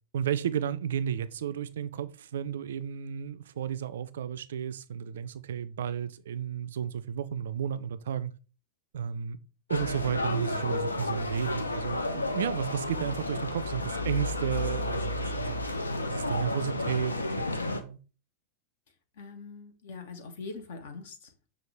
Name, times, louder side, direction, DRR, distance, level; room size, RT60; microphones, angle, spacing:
voice 1, 0.1-8.3 8.9-9.4 9.7-15.6 16.1-18.0, right 8 dB, 60° right, 0.3 m, -33 dB
sound 1, 9.7-17.8, left 2 dB, 80° left, 0.5 m, -32 dB
voice 2, 19.2-21.5, left 4 dB, 55° left, 0.9 m, -43 dB
5.9 x 2.4 x 3.2 m
figure-of-eight pair, 90°, 0 cm